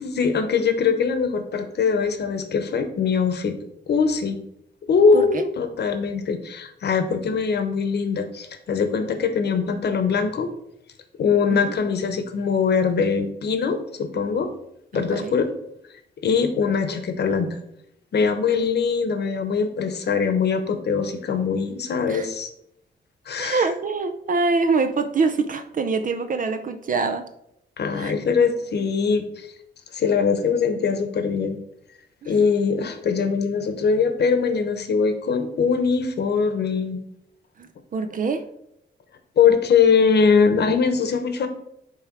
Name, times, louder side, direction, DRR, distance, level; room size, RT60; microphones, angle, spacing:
voice 1, 0.0-3.5 3.9-4.4 4.9-10.5 11.2-14.5 14.9-15.5 16.2-17.6 18.1-22.5 23.3-23.7 27.8-29.5 29.9-31.6 32.2-37.0 39.4-41.5, left 5 dB, 65° left, 8 dB, 1.0 m, -22 dB
voice 2, 5.1-5.4 11.5-11.7 14.9-15.3 22.1-22.3 23.4-27.3 28.0-28.1 32.2-32.3 37.6-38.5, right 4 dB, 50° right, 8 dB, 0.5 m, -24 dB
9.0 x 3.4 x 4.5 m, 0.78 s
cardioid pair, 115°, 18 cm